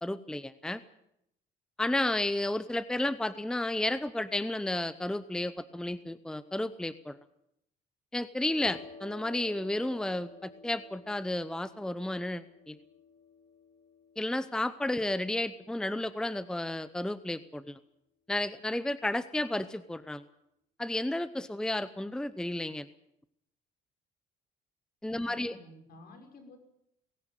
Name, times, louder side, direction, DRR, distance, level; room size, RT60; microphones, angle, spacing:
voice 1, 0.0-0.8 1.8-7.2 8.1-12.8 14.2-17.8 18.3-20.2 20.8-22.9 25.0-25.5, left 1 dB, 5° left, 14 dB, 0.8 m, -32 dB
sound 1, 8.6-16.1, left 4 dB, 40° left, 4.0 m, -53 dB
voice 2, 25.2-26.6, left 2 dB, 65° left, 5 dB, 5.9 m, -52 dB
20.0 x 17.0 x 9.1 m, 0.79 s
cardioid pair, 110°, 17 cm